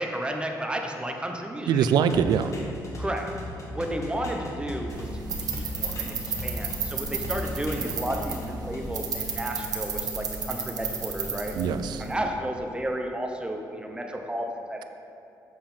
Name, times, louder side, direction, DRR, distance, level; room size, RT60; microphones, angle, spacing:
voice 1, 0.0-1.8 3.0-3.3 3.7-11.5 12.0-14.8, right 1 dB, 15° right, 3 dB, 0.9 m, -32 dB
voice 2, 1.7-2.6 11.6-12.1, right 7 dB, 75° right, 10 dB, 0.4 m, -23 dB
sound 1, 2.1-6.8 7.1-8.9, left 1 dB, 45° left, 1.6 m, -37 dB
sound 2, 4.9-12.1, right 4 dB, 60° right, 1.2 m, -33 dB
7.6 x 7.4 x 4.4 m, 2.6 s
cardioid pair, 90°, 7 cm